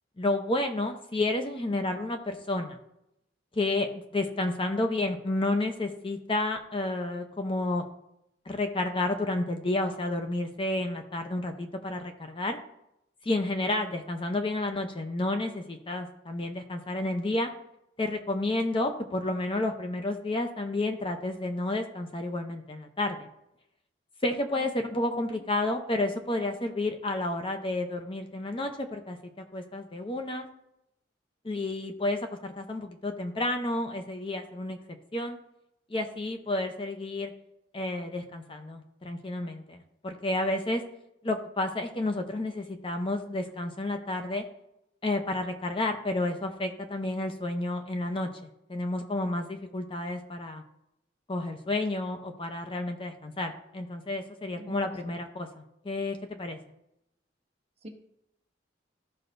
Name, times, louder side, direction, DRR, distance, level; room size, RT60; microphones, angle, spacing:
voice 1, 0.2-2.8 3.5-7.8 8.5-12.6 13.2-17.5 18.0-23.3 24.2-29.2 29.5-30.5 31.4-34.8 35.1-35.4 35.9-37.3 37.7-40.8 41.2-44.4 45.0-48.3 48.7-50.6 51.3-56.6, left 2 dB, 30° left, 5 dB, 0.7 m, -31 dB
voice 2, 54.6-55.3 57.8-57.9, right 1 dB, 35° right, 1 dB, 1.2 m, -47 dB
14.0 x 5.5 x 2.6 m, 0.81 s
head